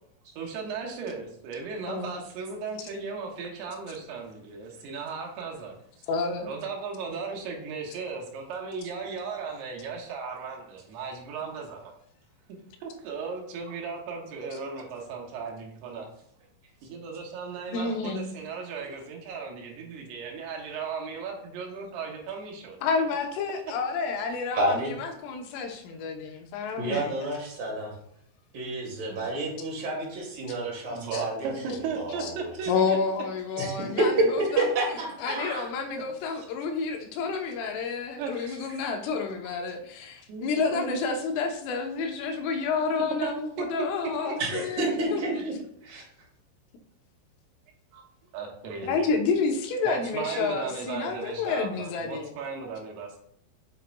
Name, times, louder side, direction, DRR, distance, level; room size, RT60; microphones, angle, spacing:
voice 1, 0.4-5.8 6.4-11.9 12.8-16.1 16.8-22.8 30.9-33.0 38.2-38.8 40.3-41.0 43.2-43.6 44.2-44.3 44.8-44.9 45.4-45.5 47.9-48.0 48.3-49.1 49.8-53.2, right 5 dB, 70° right, 0 dB, 3.0 m, -36 dB
voice 2, 6.1-6.5 17.7-18.3 22.8-27.3 31.1-31.2 32.2-32.3 32.7-34.1 34.5-34.6 35.2-45.4 48.8-52.3, left 5 dB, 85° left, 4 dB, 3.5 m, -29 dB
voice 3, 24.5-24.9 26.8-27.9 28.5-32.5 33.6-33.7 34.0-34.1 34.6-35.7 44.4-45.5 45.8-46.0, right 2 dB, 35° right, -3 dB, 1.7 m, -30 dB
7.7 x 7.6 x 2.3 m, 0.68 s
omnidirectional pair, 5.5 m